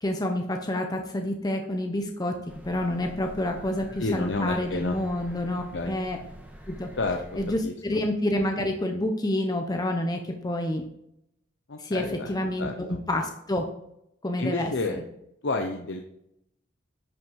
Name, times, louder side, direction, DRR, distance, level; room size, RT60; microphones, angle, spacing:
voice 1, 0.0-2.3 2.6-6.2 6.7-6.9 7.4-10.8 11.8-13.6 14.2-15.0, left 1 dB, 20° left, 4 dB, 0.9 m, -28 dB
sound 1, 2.5-7.6, equal, 10° right, 1.6 m, -45 dB
voice 2, 4.0-4.9 5.7-6.0 7.0-7.2 7.6-7.7 11.7-12.3 12.6-13.0 14.4-14.9 15.4-16.0, left 3 dB, 70° left, 3 dB, 0.8 m, -29 dB
10.5 x 6.2 x 4.7 m, 0.79 s
head